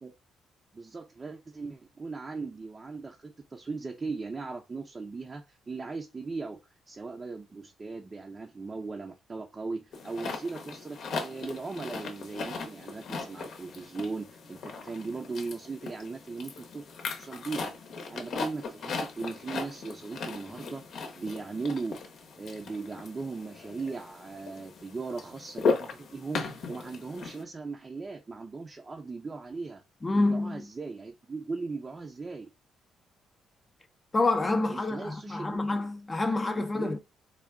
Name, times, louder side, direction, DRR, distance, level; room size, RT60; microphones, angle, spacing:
voice 1, 0.7-6.6 6.9-16.9 17.2-17.7 18.1-22.0 22.4-29.8 30.1-32.5 34.7-35.9 36.6-37.0, right 4 dB, 30° right, 0.5 m, -38 dB
sound 1, 9.9-27.4, left 4 dB, 65° left, 0.8 m, -37 dB
voice 2, 30.0-30.7 34.1-37.0, left 2 dB, 25° left, 0.5 m, -27 dB
3.7 x 2.3 x 3.4 m
cardioid pair, 90°, 0 cm